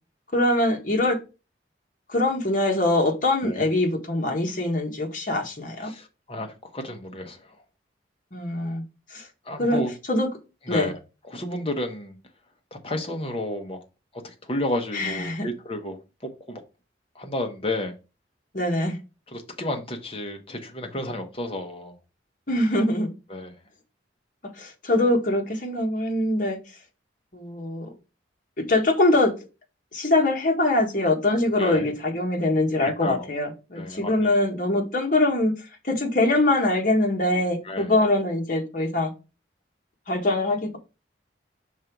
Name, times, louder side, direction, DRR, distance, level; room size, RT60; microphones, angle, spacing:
voice 1, 0.3-1.2 2.1-5.9 8.3-8.8 9.1-9.2 9.6-9.8 10.1-10.3 10.7-10.9 14.9-15.5 18.5-19.0 22.5-23.1 24.6-26.6 27.3-27.9 28.6-29.3 29.9-35.5 35.8-39.1 40.1-40.8, left 2 dB, 45° left, 1.4 m, -23 dB
voice 2, 5.8-7.6 9.4-9.9 10.6-11.0 11.3-12.2 12.7-13.8 14.2-16.0 16.5-16.6 17.1-17.9 19.3-21.9 23.3-23.6 31.6-31.9 32.8-33.3 33.7-34.3 37.6-37.9, left 1 dB, 30° left, 1.0 m, -32 dB
5.5 x 3.9 x 4.6 m
head